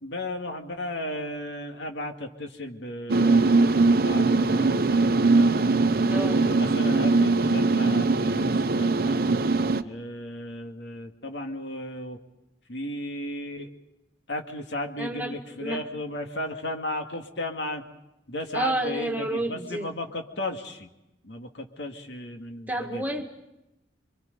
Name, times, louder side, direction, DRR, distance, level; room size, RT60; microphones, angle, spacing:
voice 1, 0.0-5.5 6.2-9.2 9.8-12.2 12.7-13.7 14.3-17.8 18.3-20.9 21.2-23.1, left 1 dB, 80° left, 4 dB, 2.2 m, -35 dB
sound 1, 3.1-9.8, right 3 dB, 55° right, 0.8 m, -21 dB
voice 2, 6.1-6.5 15.0-15.3 15.6-15.8 18.5-19.9 22.7-23.4, right 1 dB, 10° right, 3 dB, 1.9 m, -30 dB
28.5 x 24.0 x 5.3 m, 0.90 s
head